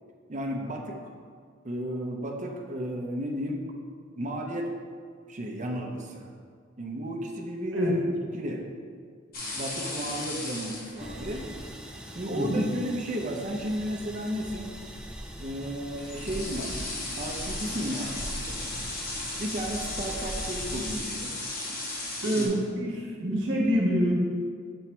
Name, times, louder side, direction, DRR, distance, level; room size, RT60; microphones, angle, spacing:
voice 1, 0.3-1.0 1.6-3.6 4.1-4.7 5.3-6.3 6.8-8.6 9.6-11.5 12.1-14.7 15.4-16.7 17.2-18.3 19.4-21.3 22.4-22.6, equal, 40° right, 1 dB, 0.6 m, -33 dB
sound 1, 9.3-22.5, left 2 dB, 45° left, 1.1 m, -37 dB
sound 2, 11.0-21.0, equal, 5° right, 0.3 m, -41 dB
voice 2, 12.3-12.7 22.2-24.1, equal, 65° right, -2 dB, 1.0 m, -26 dB
7.0 x 3.1 x 4.4 m, 2.1 s
head